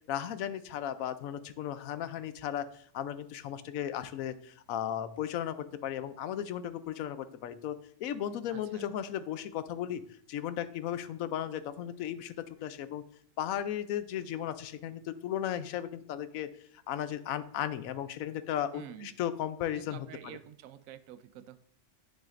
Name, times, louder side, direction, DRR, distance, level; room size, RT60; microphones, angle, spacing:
voice 1, 0.0-5.6 5.8-10.0 10.3-13.0 13.4-16.5 16.9-20.4, left 10 dB, 90° left, 13 dB, 1.0 m, -35 dB
voice 2, 8.5-8.9 18.7-19.2 19.7-21.6, right 10 dB, 80° right, 13 dB, 1.0 m, -48 dB
9.7 x 6.5 x 2.5 m, 0.65 s
omnidirectional pair, 1.4 m